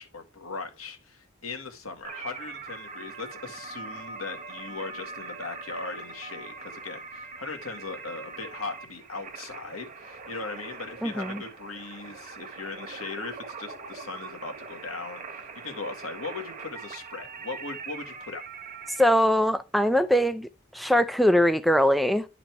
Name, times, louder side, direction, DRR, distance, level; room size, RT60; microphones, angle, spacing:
voice 1, 0.0-18.4, left 4 dB, 85° left, 1.8 m, -39 dB
sound 1, 2.0-19.1, right 4 dB, 40° right, 1.1 m, -42 dB
voice 2, 11.0-11.4 19.0-22.3, equal, ahead, 0.3 m, -22 dB
10.5 x 4.0 x 4.6 m
head